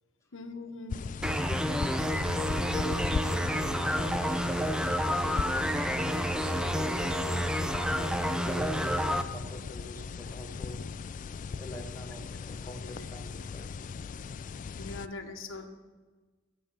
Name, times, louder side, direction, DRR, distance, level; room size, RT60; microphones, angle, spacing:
voice 1, 0.3-1.0 14.7-15.7, left 3 dB, 75° left, 5 dB, 1.3 m, -41 dB
sound 1, 0.9-15.1, left 5 dB, 40° left, 0.3 m, -38 dB
sound 2, 1.2-9.2, equal, 5° right, 0.6 m, -29 dB
voice 2, 1.7-2.2 2.6-10.8 11.6-13.7 14.5-15.0, equal, 15° left, 1 dB, 1.5 m, -44 dB
14.5 x 8.6 x 5.6 m, 1.3 s
head